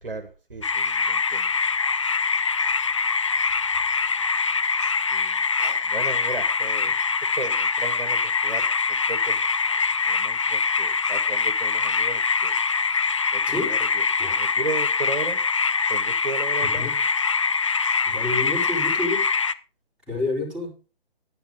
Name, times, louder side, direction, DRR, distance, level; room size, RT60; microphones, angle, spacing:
voice 1, 0.0-1.5 5.1-5.4 5.8-7.0 7.4-9.4 9.7-12.5 13.3-15.4 15.9-16.9 18.3-18.5, right 3 dB, 60° right, 5 dB, 1.8 m, -35 dB
sound 1, 0.6-19.5, left 5 dB, 35° left, 0.4 m, -24 dB
voice 2, 16.6-17.0 18.1-19.2 20.1-20.7, left 2 dB, 5° right, -7 dB, 4.2 m, -29 dB
10.5 x 10.0 x 3.7 m, 0.35 s
figure-of-eight pair, 140°, 30 cm